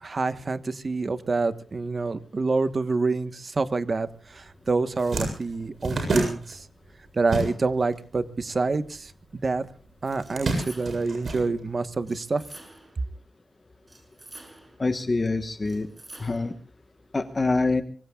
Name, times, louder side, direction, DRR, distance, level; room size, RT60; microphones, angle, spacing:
voice 1, 0.0-6.6 7.1-9.7 10.0-12.4, right 3 dB, 40° right, 11 dB, 1.1 m, -27 dB
sound 1, 4.4-4.5 4.8-7.9 8.2-9.4 10.0-12.1, right 2 dB, 60° right, 7.8 m, -30 dB
sound 2, 10.2-11.2 12.1-13.0 13.9-14.9 15.6-16.6, right 1 dB, 20° right, 5.7 m, -48 dB
voice 2, 14.8-15.9 16.2-16.5 17.1-17.8, left 3 dB, 30° left, 8 dB, 1.2 m, -25 dB
24.5 x 24.0 x 2.4 m, 0.40 s
wide cardioid pair, 130°, 0 cm